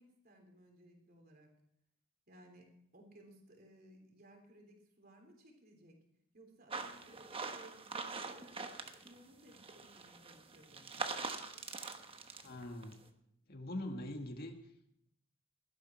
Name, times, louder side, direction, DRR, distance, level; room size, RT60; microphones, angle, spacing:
voice 1, 0.0-1.5 2.3-6.0 6.3-8.7 9.1-11.0, right 1 dB, 45° right, 2 dB, 3.4 m, -60 dB
sound 1, 6.7-9.2 9.5-13.0, right 4 dB, 25° right, 1.1 m, -44 dB
voice 2, 12.4-13.0 13.5-14.6, left 1 dB, 45° left, 4 dB, 1.8 m, -42 dB
16.5 x 12.5 x 4.5 m, 0.73 s
head